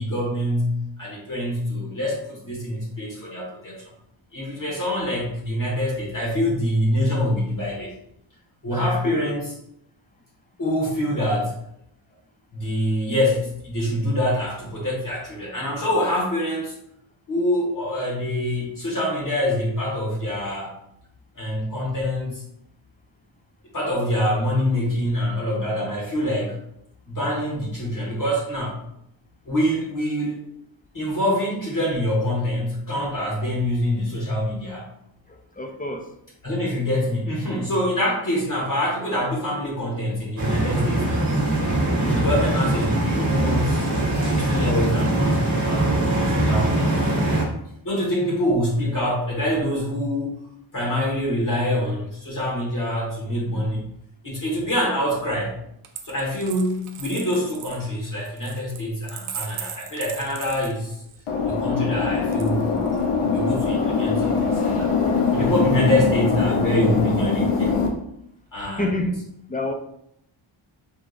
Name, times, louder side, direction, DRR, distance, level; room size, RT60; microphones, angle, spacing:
voice 1, 0.0-3.8 4.3-7.9 8.6-9.5 10.6-11.5 12.5-16.7 17.3-20.7 21.3-22.4 23.7-26.6 27.1-28.8 29.4-30.4 30.9-34.9 36.4-41.3 42.0-47.3 47.8-53.9 54.2-55.6 56.0-60.9 61.4-64.9 65.3-67.8 68.5-69.1, left 1 dB, 40° left, -5 dB, 1.7 m, -25 dB
voice 2, 8.7-9.3 35.3-36.1 68.6-69.2 69.5-69.7, left 1 dB, 20° left, 4 dB, 0.4 m, -30 dB
sound 1, 40.4-47.4, right 1 dB, 35° right, 1.5 m, -22 dB
Coin (dropping), 55.8-61.2 62.3-63.0, right 8 dB, 80° right, 0.6 m, -38 dB
sound 2, 61.3-67.9, left 5 dB, 85° left, 0.9 m, -22 dB
4.9 x 3.6 x 2.5 m, 0.75 s
wide cardioid pair, 120°, 50 cm